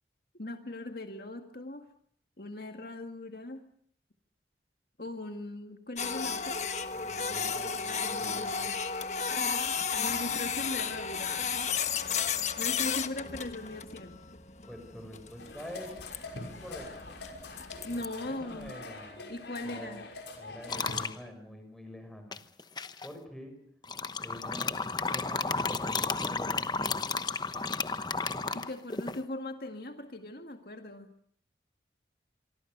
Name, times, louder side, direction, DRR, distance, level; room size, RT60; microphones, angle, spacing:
voice 1, 0.4-1.9 2.4-3.6 5.0-6.6 7.7-8.8 10.0-11.4 12.6-14.2 17.8-18.7 19.3-20.0 28.5-31.1, left 2 dB, 55° left, 6 dB, 1.9 m, -39 dB
Printer, 6.0-18.1, left 6 dB, 40° left, 1.4 m, -33 dB
voice 2, 6.9-8.7 14.7-15.9 16.4-17.3 17.9-19.2 19.6-20.1 20.4-22.4 23.0-23.5 24.2-27.0, equal, ahead, 5 dB, 6.3 m, -47 dB
sound 1, 15.4-21.1, left 2 dB, 90° left, 5.9 m, -44 dB
sound 2, 20.7-21.1 22.3-23.1 23.8-29.2, left 4 dB, 25° left, 0.9 m, -32 dB
26.5 x 24.0 x 6.7 m, 0.62 s
head